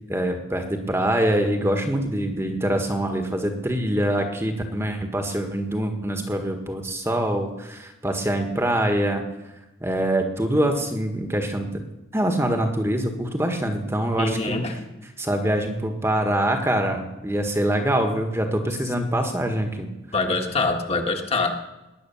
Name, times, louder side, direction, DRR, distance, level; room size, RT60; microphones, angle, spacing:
voice 1, 0.1-9.2 9.8-11.8 12.1-19.9, right 1 dB, 15° right, 5 dB, 1.5 m, -24 dB
voice 2, 14.2-14.9 20.1-21.6, left 3 dB, 30° left, 4 dB, 1.6 m, -24 dB
19.5 x 10.0 x 7.1 m, 1.0 s
head